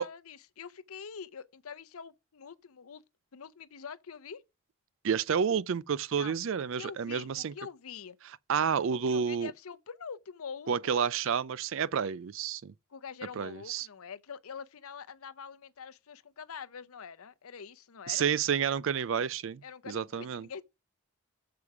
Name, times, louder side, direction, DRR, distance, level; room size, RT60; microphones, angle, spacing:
voice 1, 0.0-3.0 3.3-4.4 6.1-6.4 6.7-8.2 8.9-11.1 12.9-18.3 19.6-20.6, left 6 dB, 80° left, 0.6 m, -45 dB
voice 2, 5.0-7.5 8.5-9.5 10.7-12.7 13.4-13.9 18.1-20.5, right 7 dB, 60° right, 0.4 m, -30 dB
6.9 x 4.7 x 5.9 m
head